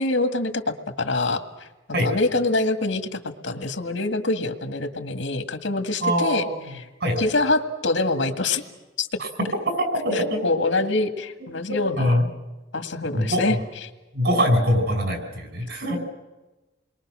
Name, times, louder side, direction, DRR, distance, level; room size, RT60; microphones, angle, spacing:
voice 1, 0.0-6.9 7.2-8.6 9.0-9.2 10.1-12.3 12.7-13.6, left 2 dB, 85° left, 7 dB, 2.0 m, -25 dB
voice 2, 6.0-6.5 7.0-7.3 9.2-9.3 9.8-10.4 11.7-12.3 13.1-13.6 14.1-16.0, equal, 60° right, 4 dB, 6.0 m, -23 dB
28.5 x 22.0 x 6.3 m, 1.1 s
head